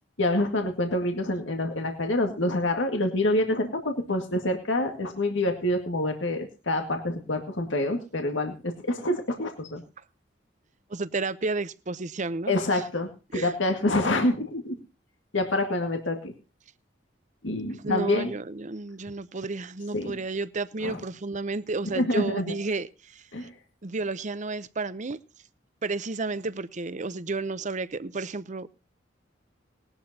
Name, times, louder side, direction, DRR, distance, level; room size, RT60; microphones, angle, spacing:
voice 1, 0.2-9.8 12.5-14.8 15.3-16.3 17.4-18.3 19.9-20.1 20.8-21.0 22.0-22.6 23.3-23.5, left 1 dB, 80° left, 4 dB, 2.0 m, -27 dB
voice 2, 10.9-12.8 13.3-13.5 17.8-23.5 23.8-25.2 25.8-28.7, right 3 dB, 40° right, 15 dB, 0.7 m, -32 dB
19.5 x 12.0 x 2.8 m, 0.31 s
head